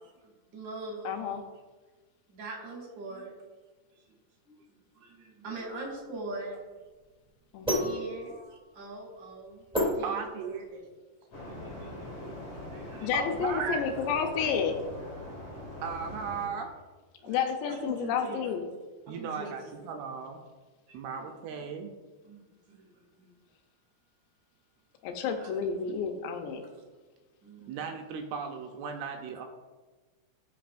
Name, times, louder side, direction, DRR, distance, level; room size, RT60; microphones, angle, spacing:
voice 1, 0.2-1.1 2.3-3.3 4.0-4.2 4.4-6.6 7.7-8.4 8.7-10.8 11.6-12.1 12.5-13.1 14.4-14.5 15.2-15.3 17.2-17.4 17.7-18.5 19.1-20.0 20.9-21.2 22.2-22.4 22.7-23.3 25.2-25.5 27.4-27.8, right 2 dB, 35° right, -1 dB, 2.1 m, -43 dB
voice 2, 1.0-1.4 7.5-7.9 13.0-14.8 17.2-18.7 25.0-26.6, left 6 dB, 80° left, 5 dB, 2.9 m, -30 dB
sound 1, 5.6-10.8, left 1 dB, ahead, 1.3 m, -33 dB
voice 3, 10.0-10.7 13.1-13.8 15.8-16.7 19.1-20.4 20.9-21.9 27.7-29.5, right 6 dB, 85° right, 3 dB, 2.3 m, -36 dB
sound 2, 11.3-16.5, left 1 dB, 40° left, 2.8 m, -42 dB
16.0 x 5.5 x 2.5 m, 1.3 s
omnidirectional pair, 5.1 m